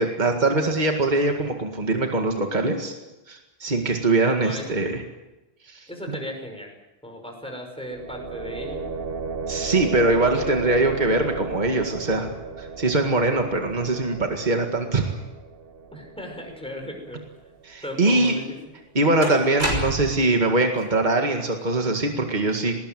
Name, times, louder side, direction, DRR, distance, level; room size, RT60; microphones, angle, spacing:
voice 1, 0.0-2.9 3.3-5.0 5.7-5.8 9.5-12.3 12.6-15.2 17.6-18.4 18.9-22.7, right 2 dB, 45° right, 3 dB, 2.2 m, -22 dB
voice 2, 5.9-6.7 7.0-8.9 15.9-17.2 17.8-18.6, equal, 5° left, 2 dB, 5.7 m, -36 dB
sound 1, 7.9-17.7, right 4 dB, 70° right, 1.3 m, -35 dB
sound 2, 18.3-18.4 19.2-20.3, right 1 dB, 85° right, 6.0 m, -27 dB
20.0 x 19.0 x 9.3 m, 1.0 s
omnidirectional pair, 1.0 m